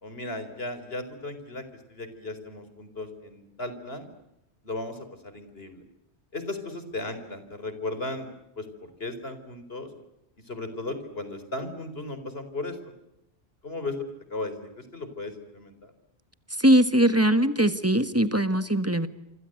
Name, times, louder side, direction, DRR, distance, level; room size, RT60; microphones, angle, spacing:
voice 1, 0.0-4.1 4.6-5.8 6.3-8.3 8.6-9.9 10.4-12.9 13.6-15.9, left 2 dB, 65° left, 10 dB, 4.5 m, -36 dB
voice 2, 16.6-19.1, right 1 dB, 15° right, 11 dB, 1.5 m, -21 dB
28.0 x 25.5 x 8.0 m, 0.89 s
omnidirectional pair, 1.1 m